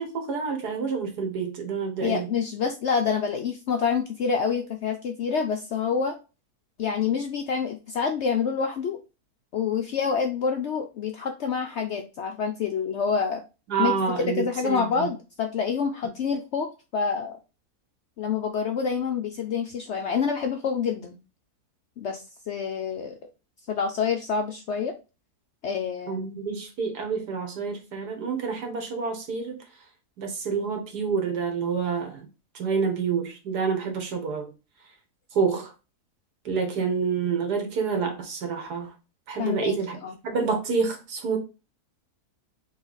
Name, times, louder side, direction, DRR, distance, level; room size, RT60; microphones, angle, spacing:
voice 1, 0.0-2.3 13.7-15.1 26.1-29.6 30.2-32.3 32.6-34.5 35.3-35.7 36.5-38.9 39.3-40.0 40.2-41.4, right 5 dB, 85° right, 4 dB, 1.7 m, -28 dB
voice 2, 2.0-6.2 6.8-9.0 9.5-13.4 13.8-13.9 14.3-17.4 18.2-21.2 22.0-23.2 23.7-24.9 25.6-26.3 39.4-39.7 40.0-40.1, left 6 dB, 70° left, 4 dB, 0.7 m, -27 dB
3.8 x 3.3 x 3.9 m, 0.30 s
omnidirectional pair, 1.7 m